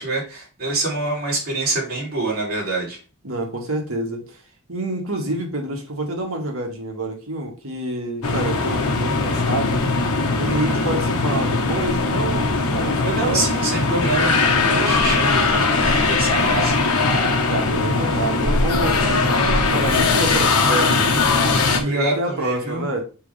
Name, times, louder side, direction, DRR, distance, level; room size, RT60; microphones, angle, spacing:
voice 1, 0.0-3.0 10.5-10.9 13.0-16.7 21.8-22.8, right 2 dB, 45° right, 3.5 m, -26 dB
voice 2, 3.2-4.4 4.7-9.8 10.3-13.5 17.5-21.3 21.7-23.0, right 1 dB, 65° right, 2.0 m, -27 dB
sound 1, 8.2-21.8, left 3 dB, 90° left, 1.4 m, -20 dB
6.7 x 5.1 x 3.4 m
head